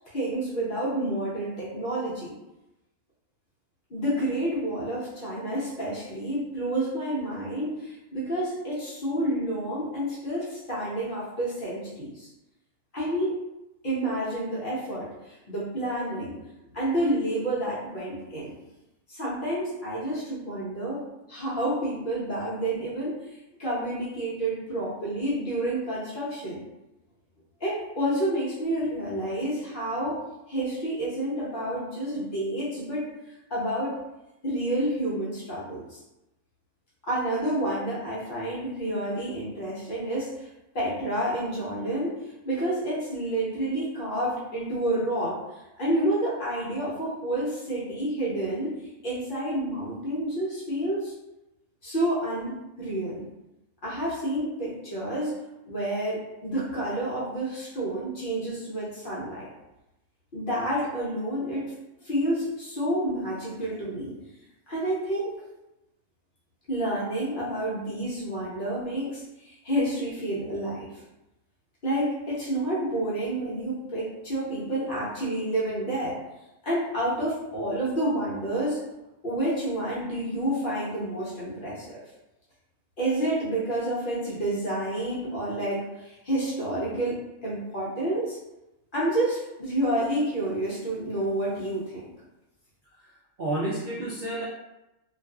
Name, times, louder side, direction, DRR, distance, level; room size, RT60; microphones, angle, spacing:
voice 1, 0.1-2.3 3.9-12.3 12.9-13.3 13.8-16.4 16.7-18.5 19.1-21.0 21.3-23.1 23.6-26.6 27.6-30.2 30.5-33.0 33.5-34.0 34.4-36.0 37.1-40.5 40.7-42.1 42.4-45.4 45.8-48.7 49.0-51.1 51.8-53.2 53.8-55.3 55.6-59.5 60.3-61.7 62.0-64.1 64.7-65.3 66.7-70.9 71.8-76.2 76.6-78.8 79.2-82.0 83.0-88.4 88.9-92.0, right 1 dB, 50° left, -7 dB, 0.8 m, -29 dB
voice 2, 93.0-94.4, right 1 dB, 75° right, -5 dB, 0.4 m, -31 dB
2.4 x 2.4 x 2.3 m, 0.95 s
omnidirectional pair, 1.4 m